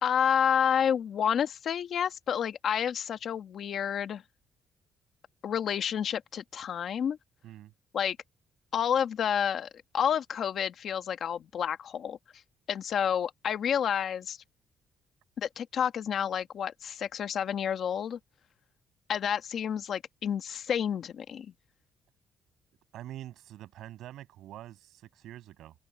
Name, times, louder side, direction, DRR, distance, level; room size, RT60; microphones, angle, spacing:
voice 1, 0.0-4.2 5.4-7.2 7.9-8.2 8.7-9.7 9.9-12.2 12.7-14.4 15.4-18.2 19.1-21.5, left 8 dB, 55° left, 1.4 m, -29 dB
voice 2, 22.9-25.7, right 13 dB, 80° right, 6.4 m, -45 dB
open air
cardioid pair, 135°, 0 cm